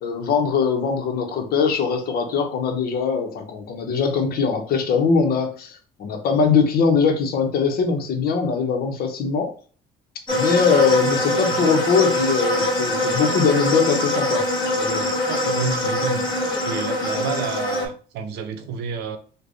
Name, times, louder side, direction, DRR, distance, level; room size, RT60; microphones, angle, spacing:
voice 1, 0.0-9.5 10.3-14.4 14.7-15.1, left 5 dB, 65° left, 0.9 m, -21 dB
sound 1, 10.3-17.9, left 1 dB, 30° left, 1.5 m, -23 dB
voice 2, 15.3-16.2 16.6-19.2, right 5 dB, 80° right, 0.6 m, -30 dB
3.3 x 2.2 x 3.9 m
cardioid pair, 110°, 17 cm